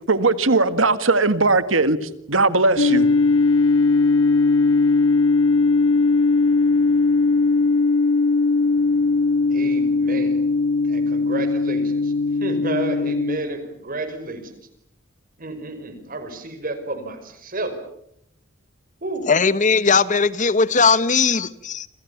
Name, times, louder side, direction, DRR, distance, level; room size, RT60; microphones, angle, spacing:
voice 1, 0.1-2.0 2.3-3.1, right 3 dB, 70° right, 1.9 m, -18 dB
sound 1, 2.8-13.4, left 3 dB, 75° left, 1.8 m, -19 dB
voice 2, 9.5-10.4 10.9-12.1 12.4-14.5 15.4-17.8 19.0-19.3, right 2 dB, 45° right, 5.4 m, -31 dB
voice 3, 19.3-21.9, left 5 dB, 40° left, 1.1 m, -18 dB
27.5 x 27.0 x 7.0 m
head